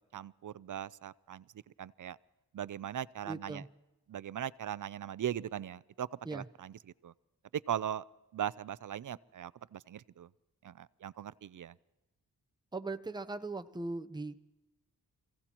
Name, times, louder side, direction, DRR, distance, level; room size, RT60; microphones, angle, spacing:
voice 1, 0.1-1.4 1.8-2.2 2.5-3.6 4.1-6.7 7.0-7.1 7.5-8.0 8.3-10.3 10.6-11.7, right 10 dB, 55° right, 19 dB, 0.5 m, -39 dB
voice 2, 3.3-3.7 6.2-6.5 12.7-14.4, right 3 dB, 10° right, 9 dB, 0.8 m, -39 dB
28.0 x 16.5 x 3.0 m, 1.0 s
cardioid pair, 50°, 39 cm